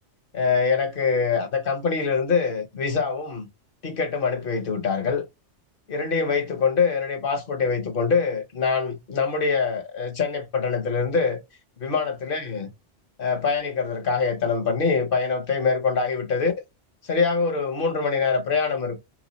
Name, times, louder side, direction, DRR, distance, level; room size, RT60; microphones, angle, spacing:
voice 1, 0.3-3.5 3.8-5.3 5.9-11.4 11.8-12.7 13.2-16.5 17.1-19.0, left 5 dB, 50° left, 1.0 m, -24 dB
4.3 x 3.0 x 4.1 m
omnidirectional pair, 1.2 m